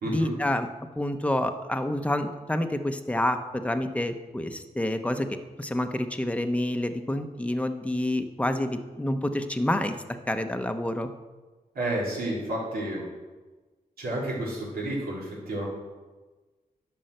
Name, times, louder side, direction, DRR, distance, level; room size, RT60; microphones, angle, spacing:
voice 1, 0.0-0.7 0.9-9.9 10.3-11.1, left 1 dB, 10° left, 7 dB, 0.9 m, -28 dB
voice 2, 11.8-13.0 14.0-15.6, right 1 dB, 80° right, -5 dB, 3.6 m, -30 dB
10.0 x 5.6 x 6.6 m, 1.3 s
cardioid pair, 65°, 15 cm